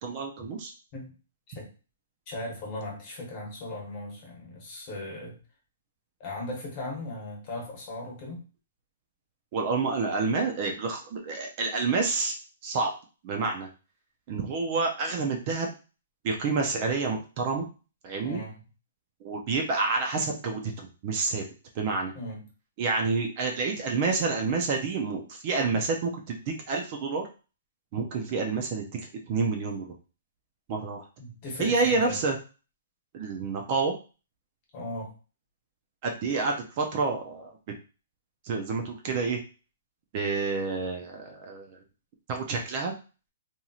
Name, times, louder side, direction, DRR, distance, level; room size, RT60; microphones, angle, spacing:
voice 1, 0.0-0.7 9.5-12.3 12.6-12.9 13.2-13.7 14.3-15.7 16.2-17.7 18.0-18.4 19.2-21.4 21.8-22.1 22.8-27.2 27.9-29.9 30.7-31.0 31.6-32.3 33.1-33.9 36.0-37.5 38.4-39.4 40.1-41.7 42.3-42.9, right 4 dB, 30° right, 2 dB, 0.4 m, -28 dB
voice 2, 2.3-5.4 6.2-8.4 18.2-18.7 22.1-22.5 31.2-32.2 34.7-35.1, left 1 dB, 30° left, -1 dB, 1.0 m, -37 dB
3.0 x 2.7 x 2.4 m, 0.34 s
hypercardioid pair, 165°, 0 cm